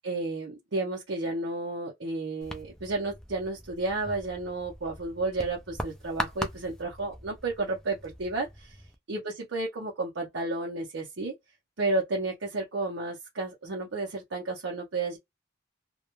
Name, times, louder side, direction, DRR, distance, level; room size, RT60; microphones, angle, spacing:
voice 1, 0.0-8.7 9.1-11.3 11.8-15.2, right 2 dB, 80° right, 0.7 m, -32 dB
sound 1, 2.4-9.0, equal, 5° left, 0.3 m, -40 dB
2.2 x 2.2 x 2.9 m
head